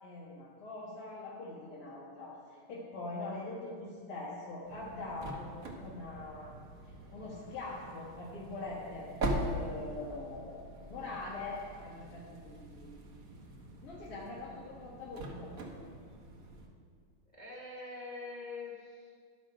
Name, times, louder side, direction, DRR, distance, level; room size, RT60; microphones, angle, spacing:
voice 1, 0.0-6.5 7.1-9.1 9.5-12.9 13.8-15.5, left 2 dB, 85° left, -7 dB, 2.5 m, -43 dB
sound 1, 4.6-16.7, right 1 dB, 50° right, 1.4 m, -42 dB
voice 2, 17.3-19.2, left 3 dB, 25° left, -4 dB, 1.0 m, -44 dB
12.5 x 6.3 x 5.0 m, 2.1 s
omnidirectional pair, 2.4 m